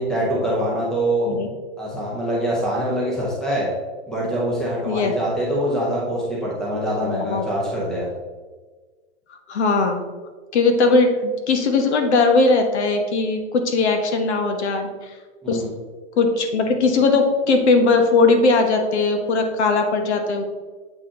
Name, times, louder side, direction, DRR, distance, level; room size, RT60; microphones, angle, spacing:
voice 1, 0.0-1.3 1.8-3.7 4.1-8.1 15.4-15.7, right 1 dB, ahead, -5 dB, 0.6 m, -24 dB
voice 2, 7.0-7.4 9.5-10.0 10.5-14.9 15.5-15.6 16.2-20.4, left 3 dB, 75° left, 5 dB, 1.2 m, -19 dB
7.6 x 4.2 x 3.7 m, 1.4 s
supercardioid pair, 170°, 34 cm